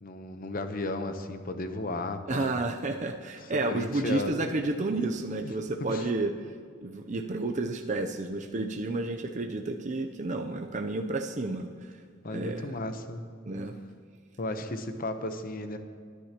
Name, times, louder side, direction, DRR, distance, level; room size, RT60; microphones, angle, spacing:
voice 1, 0.0-2.6 3.4-4.5 4.8-4.9 5.4-5.5 5.9-6.1 12.2-13.2 14.4-15.8, left 2 dB, 45° left, 8 dB, 0.9 m, -34 dB
voice 2, 2.3-6.3 6.8-11.7 12.3-12.7 13.5-13.7, right 2 dB, 35° right, 4 dB, 0.6 m, -31 dB
21.0 x 10.0 x 3.0 m, 2.2 s
head